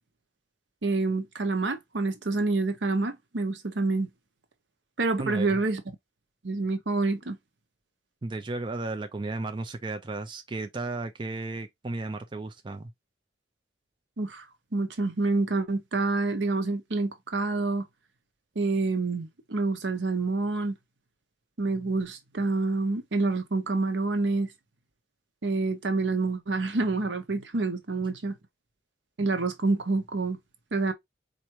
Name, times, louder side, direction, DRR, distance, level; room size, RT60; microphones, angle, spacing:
voice 1, 0.8-4.1 5.0-5.8 6.4-7.4 14.2-14.5 14.7-17.8 18.6-20.7 21.6-24.5 25.4-28.3 29.2-30.4 30.7-30.9, right 3 dB, 75° right, 0.9 m, -27 dB
voice 2, 5.2-5.6 8.2-12.9, right 2 dB, 25° right, 0.5 m, -34 dB
4.5 x 2.6 x 2.9 m
head